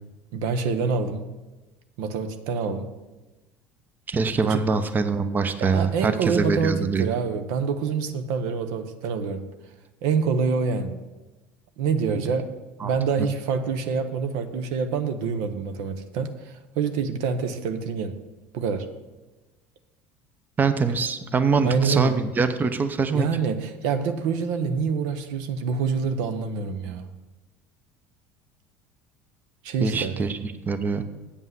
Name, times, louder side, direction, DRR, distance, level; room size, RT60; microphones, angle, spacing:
voice 1, 0.3-1.3 2.0-2.9 4.4-4.6 5.6-9.5 10.0-11.0 11.8-12.5 12.8-18.1 18.5-18.9 21.6-22.2 23.1-27.1 29.6-30.2, right 5 dB, 75° right, 8 dB, 0.7 m, -26 dB
voice 2, 4.1-7.0 12.8-12.9 20.6-23.3 29.8-31.0, right 4 dB, 30° right, 10 dB, 0.7 m, -24 dB
8.3 x 5.5 x 7.7 m, 1.1 s
supercardioid pair, 85°, 6 cm